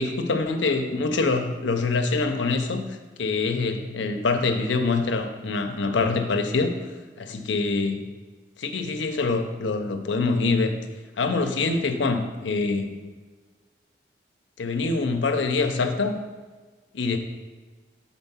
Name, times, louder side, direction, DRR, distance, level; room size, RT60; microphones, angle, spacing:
voice 1, 0.0-2.9 3.2-6.7 7.2-8.0 8.6-10.7 11.2-12.9 14.6-16.1 16.9-17.2, left 3 dB, 90° left, 6 dB, 0.6 m, -25 dB
4.5 x 4.2 x 5.5 m, 1.4 s
head